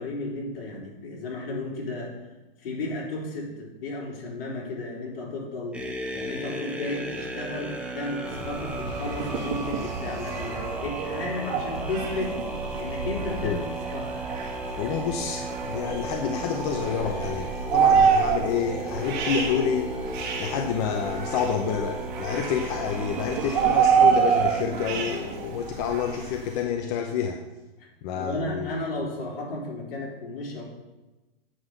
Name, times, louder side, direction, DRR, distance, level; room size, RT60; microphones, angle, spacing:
voice 1, 0.0-2.2 2.6-12.4 12.8-13.6 13.9-14.1 27.8-27.9 28.1-30.6, left 2 dB, 65° left, -2 dB, 3.7 m, -34 dB
sound 1, 5.7-24.6, right 1 dB, 5° right, 0.8 m, -35 dB
sound 2, 8.3-26.6, right 6 dB, 50° right, 2.1 m, -27 dB
voice 2, 14.8-19.9 20.4-27.4 28.0-28.8, left 7 dB, 40° left, 4 dB, 0.8 m, -28 dB
8.7 x 5.6 x 6.6 m, 1.1 s
hypercardioid pair, 145°, 30 cm